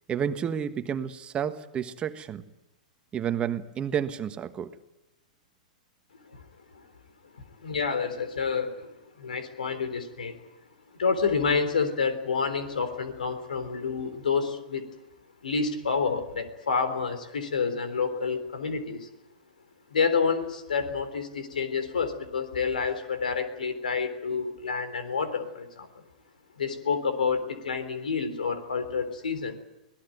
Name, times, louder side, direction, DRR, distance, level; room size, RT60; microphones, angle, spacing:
voice 1, 0.1-2.4 3.1-4.8, right 8 dB, 25° right, 9 dB, 1.4 m, -30 dB
voice 2, 7.4-10.4 11.0-14.8 15.4-19.1 19.9-26.0 26.6-29.6, left 5 dB, 85° left, 11 dB, 3.7 m, -29 dB
25.0 x 18.0 x 9.3 m, 0.96 s
hypercardioid pair, 115°, 4 cm